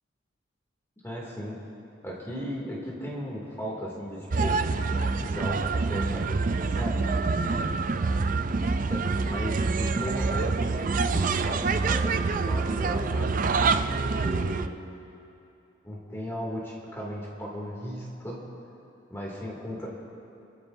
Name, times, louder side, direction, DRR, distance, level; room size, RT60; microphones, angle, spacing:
voice 1, 1.0-1.6 2.0-4.9 5.2-7.8 8.7-13.3 14.0-14.8 15.8-18.4 19.1-19.9, equal, 15° left, -4 dB, 2.4 m, -36 dB
sound 1, 4.3-14.7, right 4 dB, 45° right, 0.4 m, -26 dB
29.5 x 13.0 x 2.7 m, 2.8 s
head